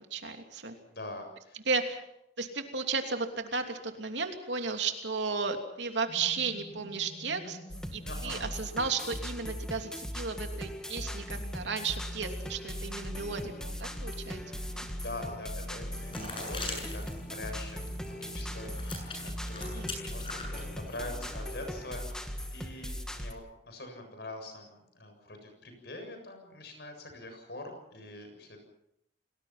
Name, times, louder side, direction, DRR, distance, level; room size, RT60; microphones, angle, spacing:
voice 1, 0.0-0.7 1.7-2.0 2.4-7.6 7.9-14.4 14.7-14.9 16.2-16.3 19.7-19.9, right 4 dB, 80° right, 5 dB, 3.0 m, -34 dB
voice 2, 0.8-1.6 8.0-8.5 14.2-14.3 14.9-17.0 17.3-28.6, left 2 dB, 65° left, 5 dB, 7.3 m, -44 dB
sound 1, 6.1-9.0 10.6-20.9, equal, 45° left, 2.4 m, -49 dB
sound 2, 7.7-23.3, equal, 5° left, 2.1 m, -39 dB
sound 3, 15.8-21.4, left 3 dB, 30° left, 7.9 m, -43 dB
29.5 x 20.0 x 5.9 m, 0.79 s
head